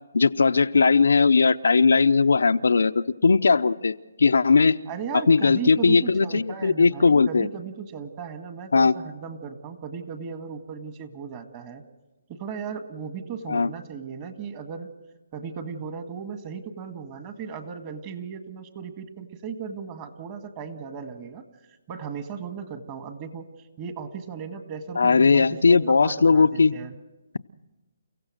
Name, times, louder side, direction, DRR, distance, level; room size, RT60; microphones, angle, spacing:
voice 1, 0.1-4.8 5.3-7.5 8.7-8.9 13.5-13.7 25.0-26.7, left 4 dB, 80° left, 10 dB, 0.6 m, -19 dB
voice 2, 4.9-11.8 12.3-14.9 15.3-21.4 21.9-27.0, right 6 dB, 25° right, 8 dB, 1.8 m, -36 dB
30.0 x 16.0 x 6.5 m, 1.1 s
hypercardioid pair, 160°, 0 cm